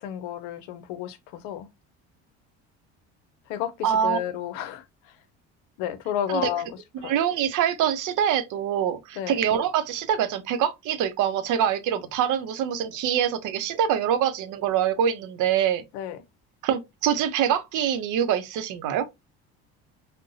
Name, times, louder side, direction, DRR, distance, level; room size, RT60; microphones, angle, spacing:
voice 1, 0.0-1.7 3.5-5.1 5.8-6.7 7.0-7.2 9.1-9.4 15.9-16.2, left 10 dB, 85° left, 0.6 m, -31 dB
voice 2, 3.8-4.2 6.3-6.5 7.0-15.8 16.6-19.1, right 9 dB, 65° right, 0.7 m, -24 dB
3.8 x 2.1 x 2.5 m
supercardioid pair, 80°, 33 cm